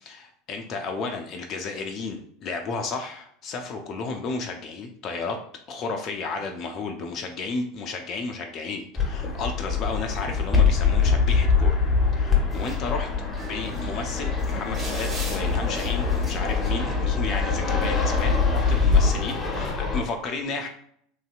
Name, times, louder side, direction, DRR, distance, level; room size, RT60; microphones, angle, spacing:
voice 1, 0.5-5.4 5.7-11.8 12.2-13.1 13.4-20.7, left 4 dB, 40° left, 4 dB, 0.4 m, -33 dB
Fixed-wing aircraft airplane, 9.0-20.0, left 4 dB, 10° left, 0.9 m, -23 dB
sound 1, 12.5-19.7, right 2 dB, 25° right, 1.3 m, -44 dB
3.2 x 2.7 x 2.3 m, 0.65 s
figure-of-eight pair, 75°, 0 cm